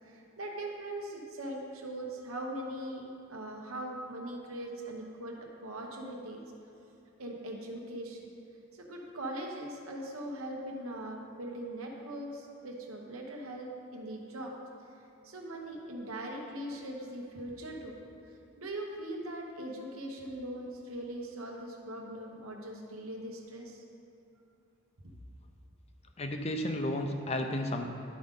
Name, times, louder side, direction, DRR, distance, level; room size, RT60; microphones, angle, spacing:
voice 1, 0.0-6.4 7.2-8.2 8.7-14.5 15.2-17.9 18.6-23.8, right 1 dB, 75° right, 0 dB, 1.1 m, -40 dB
voice 2, 26.2-27.9, left 1 dB, 30° left, 5 dB, 0.5 m, -32 dB
11.0 x 5.2 x 3.8 m, 2.9 s
head